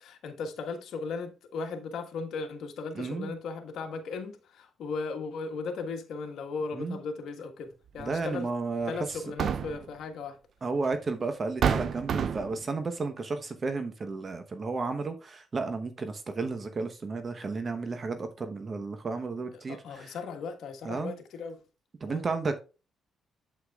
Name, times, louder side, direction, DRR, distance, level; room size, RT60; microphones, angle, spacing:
voice 1, 0.0-8.5 8.9-10.4 19.5-21.6 22.1-22.2, left 4 dB, 75° left, 1.4 m, -37 dB
voice 2, 2.9-3.3 6.7-7.0 8.0-9.2 10.6-20.1 20.8-21.1 22.0-22.6, right 4 dB, 35° right, 1.0 m, -33 dB
sound 1, 8.0-8.1 9.1-9.9 10.9-11.0 11.6-12.6, right 7 dB, 60° right, 0.4 m, -28 dB
8.2 x 8.0 x 2.4 m
cardioid pair, 90°, 0 cm